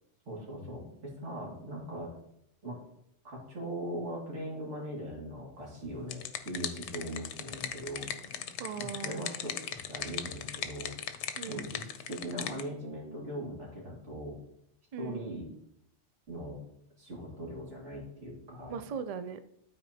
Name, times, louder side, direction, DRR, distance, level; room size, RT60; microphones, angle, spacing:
voice 1, 0.3-2.2 2.6-2.8 3.2-6.2 6.4-8.1 8.8-14.4 15.0-15.5 16.3-16.6 17.0-18.8, right 1 dB, 80° right, -3 dB, 2.6 m, -40 dB
sound 1, 5.8-12.6, left 8 dB, 75° left, 0.9 m, -39 dB
voice 2, 8.6-9.3 11.4-11.7 14.9-15.2 18.7-19.4, right 6 dB, 60° right, 11 dB, 0.4 m, -39 dB
12.5 x 4.3 x 2.8 m, 0.74 s
omnidirectional pair, 1.2 m